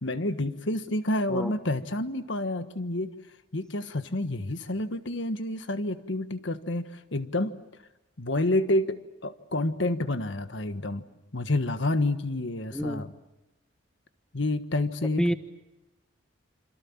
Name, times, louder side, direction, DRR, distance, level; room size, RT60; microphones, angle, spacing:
voice 1, 0.0-3.1 3.5-7.5 8.2-11.1 11.3-13.1 14.3-15.3, left 1 dB, 65° left, 10 dB, 1.5 m, -29 dB
voice 2, 12.7-13.0 15.2-15.3, equal, 5° left, 10 dB, 1.1 m, -27 dB
27.5 x 27.0 x 7.3 m, 1.0 s
head